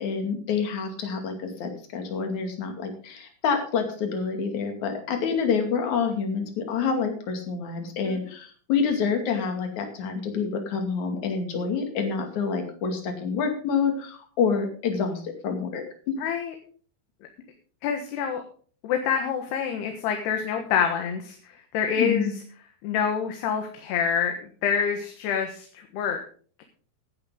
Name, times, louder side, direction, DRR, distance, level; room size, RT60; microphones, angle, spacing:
voice 1, 0.0-16.2 22.0-22.3, left 5 dB, 50° left, 4 dB, 3.4 m, -27 dB
voice 2, 16.2-16.6 17.8-18.4 18.8-21.4 21.7-22.3 22.8-26.2, left 7 dB, 90° left, 4 dB, 3.5 m, -26 dB
15.0 x 11.5 x 3.8 m, 0.43 s
omnidirectional pair, 4.6 m